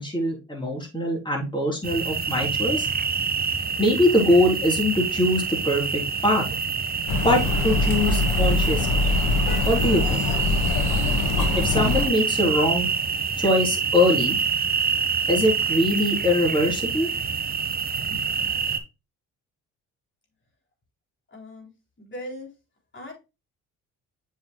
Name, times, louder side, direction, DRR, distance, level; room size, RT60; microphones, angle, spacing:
voice 1, 0.0-2.9 3.8-6.4 7.2-9.0 9.6-10.2 11.5-12.9 13.4-14.4 15.3-17.1, left 1 dB, 15° left, -1 dB, 3.8 m, -22 dB
sound 1, 1.8-18.8, right 6 dB, 25° right, 1.0 m, -26 dB
sound 2, 7.1-12.1, left 3 dB, 60° left, 1.5 m, -23 dB
voice 2, 21.3-21.7 22.0-22.5 22.9-23.1, left 1 dB, 35° left, 0 dB, 3.5 m, -38 dB
7.6 x 5.7 x 2.3 m, 0.27 s
supercardioid pair, 65°, 36 cm